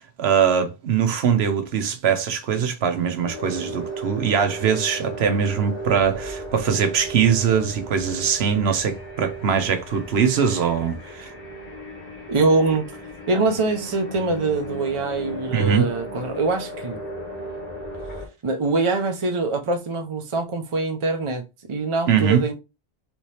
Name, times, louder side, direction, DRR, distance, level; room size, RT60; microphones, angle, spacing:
voice 1, 0.2-11.3 15.5-15.9 22.1-22.4, right 7 dB, 75° right, 0.9 m, -22 dB
sound 1, 3.2-18.3, right 1 dB, 40° left, 1.0 m, -36 dB
voice 2, 12.3-12.9 13.3-17.0 18.4-21.4 21.7-22.5, right 3 dB, 35° right, 0.6 m, -23 dB
3.4 x 2.8 x 3.2 m
omnidirectional pair, 1.1 m